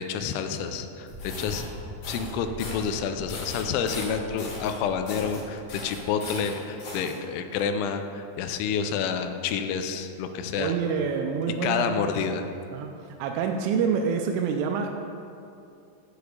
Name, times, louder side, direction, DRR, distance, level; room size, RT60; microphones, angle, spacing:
voice 1, 0.0-1.6 2.1-10.7 11.6-12.5, left 6 dB, 85° left, 7 dB, 2.8 m, -29 dB
sound 1, 1.1-1.6 2.0-2.3 2.6-2.9 3.3-4.7 5.1-5.4 5.7-7.1, left 2 dB, 60° left, 1.9 m, -38 dB
sound 2, 1.1-6.3, left 1 dB, 60° right, 0.7 m, -42 dB
voice 2, 10.6-12.1 12.7-14.9, right 6 dB, 90° right, 3 dB, 3.0 m, -27 dB
8.3 x 4.8 x 6.6 m, 2.6 s
omnidirectional pair, 5.4 m